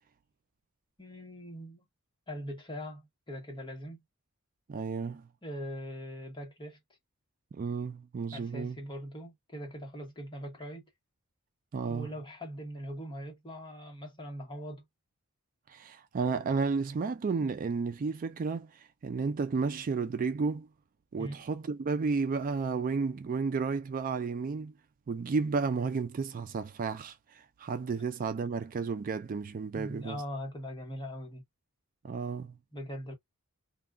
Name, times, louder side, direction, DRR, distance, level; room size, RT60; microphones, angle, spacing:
voice 1, 1.0-1.9 2.3-4.0 5.4-6.8 8.3-10.9 11.9-14.8 21.2-21.4 29.7-31.4 32.7-33.1, equal, 20° left, 1.0 m, -41 dB
voice 2, 4.7-5.3 7.5-8.8 11.7-12.1 15.7-20.7 21.1-24.7 25.1-30.2 32.0-32.6, right 4 dB, 40° right, 0.3 m, -32 dB
2.3 x 2.3 x 3.5 m
head